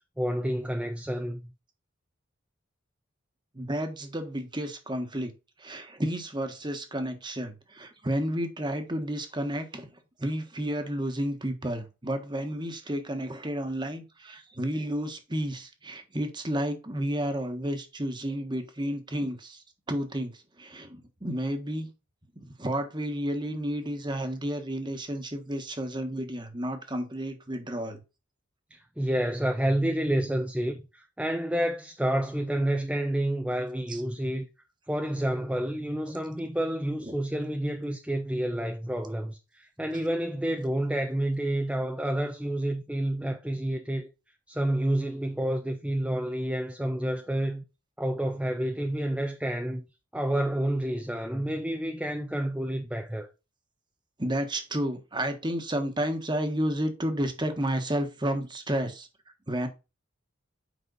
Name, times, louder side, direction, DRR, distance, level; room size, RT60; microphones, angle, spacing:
voice 1, 0.2-1.5 28.7-34.5 34.9-44.1 44.5-47.6 48.0-49.8 50.1-53.3, right 1 dB, 5° right, 0.6 m, -29 dB
voice 2, 3.5-5.3 5.6-9.9 10.2-21.9 22.3-28.0 33.9-34.0 37.0-37.1 54.2-59.1 59.5-59.7, right 1 dB, 20° right, 1.4 m, -31 dB
8.2 x 5.5 x 4.0 m
head